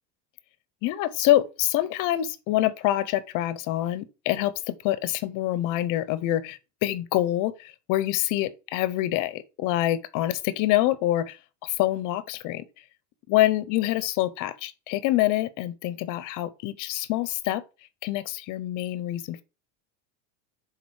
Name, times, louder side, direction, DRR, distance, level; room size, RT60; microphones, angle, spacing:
voice 1, 0.8-12.6 13.3-17.6 18.0-19.4, left 14 dB, 45° left, 0.5 m, -26 dB
6.2 x 4.0 x 4.6 m
supercardioid pair, 145°, 46 cm